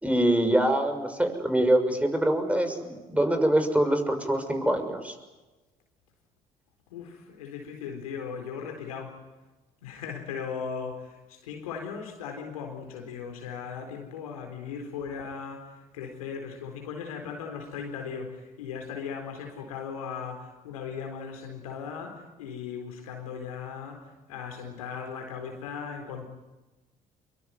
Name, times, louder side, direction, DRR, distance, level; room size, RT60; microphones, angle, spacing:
voice 1, 0.0-5.1, right 1 dB, 5° right, 6 dB, 6.4 m, -24 dB
voice 2, 6.9-9.1 9.8-24.0 24.3-26.2, left 6 dB, 90° left, 3 dB, 4.0 m, -38 dB
25.0 x 23.5 x 9.5 m, 1.1 s
hypercardioid pair, 55°, 18 cm